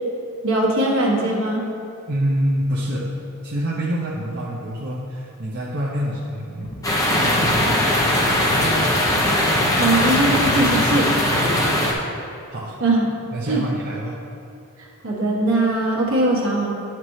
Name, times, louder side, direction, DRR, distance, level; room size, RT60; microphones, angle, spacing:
voice 1, 0.4-1.6 9.8-11.1 12.8-13.0 13.5-13.6 15.0-16.7, right 2 dB, 70° right, -3 dB, 1.4 m, -20 dB
voice 2, 2.1-3.1 3.4-6.7 7.1-8.4 11.5-12.1 12.5-12.8 13.3-14.2, equal, 50° right, -5 dB, 0.7 m, -27 dB
sound 1, 6.6-11.9, equal, 55° left, 1.0 m, -27 dB
sound 2, 6.8-11.9, left 1 dB, 15° left, 0.7 m, -20 dB
9.6 x 5.9 x 3.2 m, 2.7 s
head